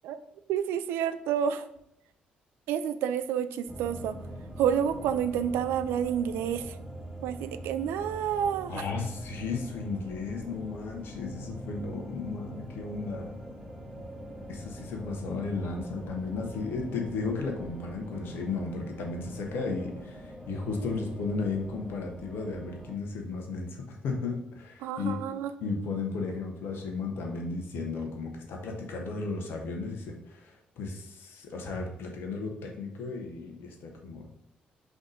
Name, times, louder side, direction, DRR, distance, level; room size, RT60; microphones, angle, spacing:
voice 1, 0.5-1.6 2.7-4.2 4.6-6.7 7.2-8.8 24.8-25.5, right 9 dB, 60° right, 11 dB, 0.4 m, -29 dB
sound 1, 3.7-23.0, equal, 5° right, 1.5 m, -43 dB
voice 2, 8.7-13.3 14.5-25.2 25.6-34.3, left 4 dB, 55° left, 2 dB, 1.2 m, -34 dB
5.2 x 4.1 x 5.0 m, 0.78 s
figure-of-eight pair, 40°, 4 cm